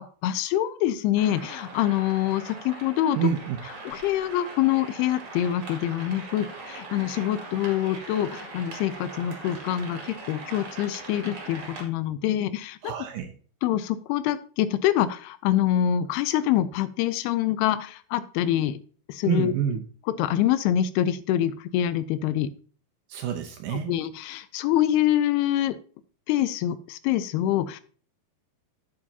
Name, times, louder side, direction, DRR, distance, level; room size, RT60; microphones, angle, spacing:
voice 1, 0.0-3.2 3.9-12.9 13.6-18.8 19.1-19.5 20.2-22.5 23.7-25.8 26.3-27.8, left 12 dB, 85° left, 14 dB, 2.5 m, -25 dB
sound 1, 1.2-11.8, right 3 dB, 45° right, 2.2 m, -41 dB
voice 2, 3.2-3.6 12.8-13.3 19.2-19.8 23.1-23.9, right 8 dB, 75° right, 4 dB, 2.2 m, -27 dB
8.7 x 8.7 x 2.7 m, 0.42 s
omnidirectional pair, 4.5 m